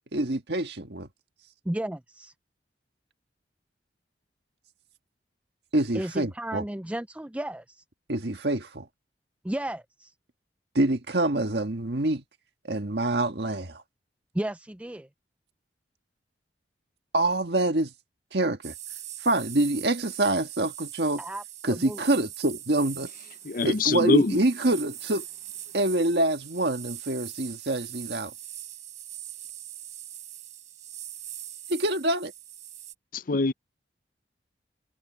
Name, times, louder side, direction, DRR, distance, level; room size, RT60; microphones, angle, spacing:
voice 1, 0.1-1.1 5.7-6.6 8.1-8.9 10.7-12.2 12.7-13.8 17.1-17.9 18.3-18.7 19.2-21.2 21.6-23.1 23.6-25.2 25.7-28.3 31.7-32.3, right 1 dB, 65° right, 1.7 m, -26 dB
voice 2, 1.7-2.3 5.9-7.6 9.4-10.1 14.3-15.1 21.2-22.0, right 1 dB, 5° right, 0.4 m, -33 dB
sound 1, 18.6-32.9, right 12 dB, 45° right, 4.3 m, -42 dB
voice 3, 23.4-24.4 33.1-33.5, left 3 dB, 50° left, 0.6 m, -24 dB
head